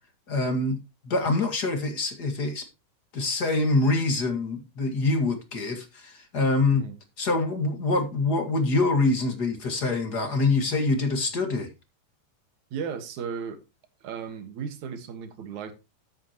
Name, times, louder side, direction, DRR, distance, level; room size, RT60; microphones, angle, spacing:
voice 1, 0.3-2.7 3.1-6.8 7.2-11.7, left 3 dB, 35° left, 2.0 m, -25 dB
voice 2, 12.7-13.6 14.0-15.7, right 6 dB, 65° right, 2.8 m, -35 dB
13.0 x 8.4 x 3.0 m
omnidirectional pair, 3.8 m